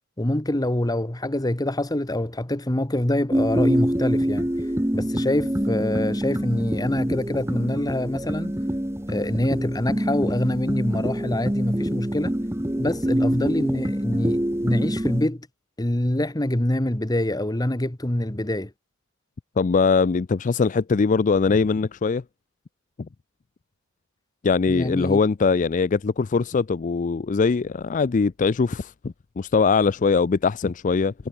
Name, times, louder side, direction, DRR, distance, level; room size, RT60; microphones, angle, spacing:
voice 1, 0.2-4.5 4.9-8.5 9.1-12.3 12.8-15.5 15.8-18.7 24.7-25.2, left 1 dB, 20° left, 1.3 m, -25 dB
sound 1, 3.3-15.3, equal, 15° right, 1.4 m, -25 dB
voice 2, 19.6-22.2 23.0-23.1 24.4-31.1, left 4 dB, 40° left, 0.4 m, -21 dB
head